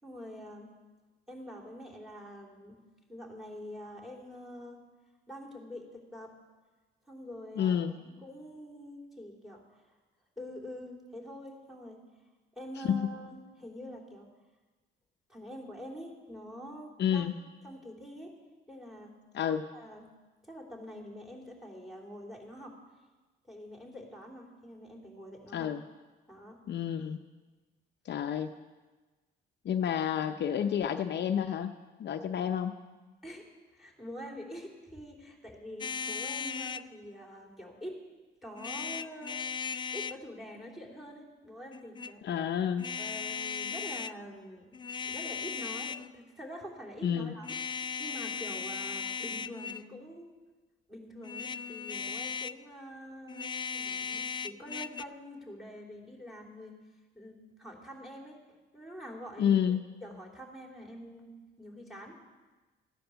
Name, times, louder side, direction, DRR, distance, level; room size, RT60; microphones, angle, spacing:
voice 1, 0.0-0.8 1.3-2.8 3.1-4.8 5.3-6.3 7.1-7.8 8.0-9.8 10.4-12.0 12.5-14.3 15.3-17.3 17.6-18.3 18.7-19.2 19.7-20.1 20.4-22.8 23.5-25.7 26.3-26.6 33.2-33.5 33.7-38.0 38.4-39.4 39.9-42.3 42.9-50.3 50.9-56.8 57.1-59.6 60.0-62.2, equal, ahead, 1 dB, 3.2 m, -46 dB
voice 2, 7.6-7.9 12.8-13.1 17.0-17.3 19.3-19.6 25.5-25.8 26.7-27.2 28.1-28.5 29.6-32.8 42.2-42.9 47.0-47.3 59.4-59.8, left 8 dB, 60° left, 7 dB, 0.7 m, -29 dB
sound 1, 35.8-36.9 38.6-40.2 41.7-42.1 42.8-44.2 44.7-46.1 47.4-49.9 51.2-52.6 53.3-55.0, left 6 dB, 25° left, 0.3 m, -37 dB
14.5 x 10.0 x 6.9 m, 1.2 s
cardioid pair, 90°, 20 cm